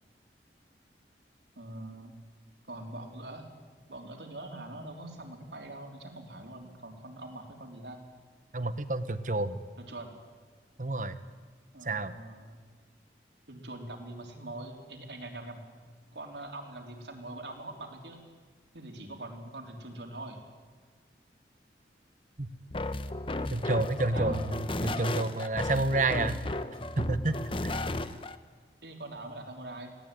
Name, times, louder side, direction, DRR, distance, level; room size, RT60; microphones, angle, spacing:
voice 1, 1.6-2.1 2.7-3.5 3.9-8.0 9.8-10.2 11.7-12.6 13.5-15.6 16.1-18.2 18.7-20.4 24.1-24.6 28.8-30.0, right 2 dB, 80° right, 3 dB, 3.6 m, -43 dB
voice 2, 8.5-9.6 10.8-11.2 11.8-12.2 22.4-22.5 23.5-26.4 27.0-27.8, right 2 dB, 45° right, 12 dB, 1.2 m, -30 dB
sound 1, 22.7-28.4, left 2 dB, 30° left, 0.9 m, -34 dB
24.0 x 18.0 x 9.2 m, 1.5 s
head